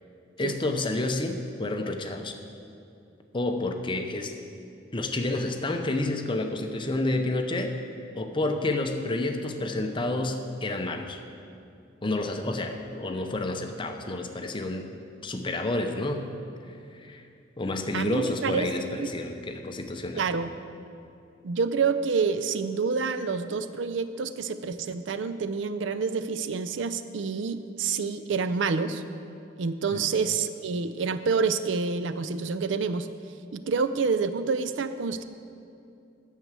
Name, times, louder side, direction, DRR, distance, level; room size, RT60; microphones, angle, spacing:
voice 1, 0.4-2.4 3.3-4.3 4.9-7.8 8.1-11.2 12.0-14.9 15.2-16.4 16.7-17.2 17.6-20.4 29.9-30.0, left 2 dB, 25° left, 5 dB, 0.7 m, -29 dB
voice 2, 17.9-18.7 19.0-19.1 20.2-20.5 21.4-29.0 29.6-33.1 33.5-35.2, right 5 dB, 65° right, 12 dB, 0.4 m, -28 dB
9.1 x 6.7 x 7.5 m, 2.5 s
head